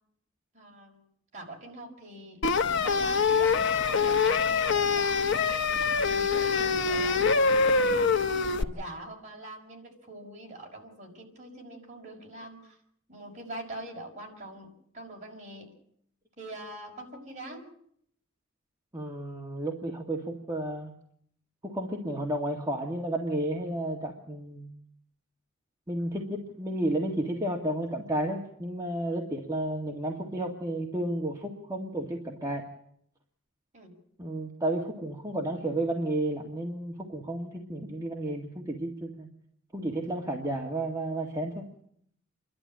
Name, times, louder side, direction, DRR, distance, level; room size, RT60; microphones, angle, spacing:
voice 1, 0.5-1.0 1.3-2.4 2.8-5.2 6.0-7.9 8.6-12.8 13.1-14.7 14.9-15.7 16.4-17.7 33.7-34.0, right 1 dB, 35° right, 0 dB, 5.9 m, -43 dB
sound 1, 2.4-8.6, left 5 dB, 65° left, 1.0 m, -24 dB
voice 2, 18.9-20.9 21.6-24.7 25.9-32.7 34.2-39.3 39.7-41.7, right 1 dB, 15° right, -1 dB, 2.1 m, -32 dB
28.5 x 12.5 x 8.8 m, 0.69 s
head